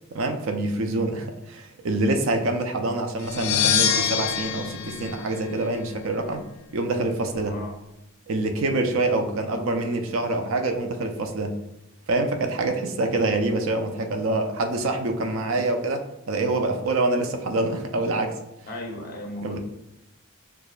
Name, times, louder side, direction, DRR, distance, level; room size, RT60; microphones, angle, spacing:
voice 1, 0.1-6.4 6.7-7.6 8.3-11.5 12.1-18.4 19.4-19.6, right 2 dB, 70° right, 5 dB, 0.5 m, -26 dB
sound 1, 3.2-6.0, left 8 dB, 90° left, 0.4 m, -25 dB
voice 2, 7.3-7.7 15.3-15.6 17.4-17.5 18.7-19.6, left 1 dB, 45° left, 0 dB, 0.9 m, -37 dB
6.6 x 2.4 x 2.4 m, 0.88 s
head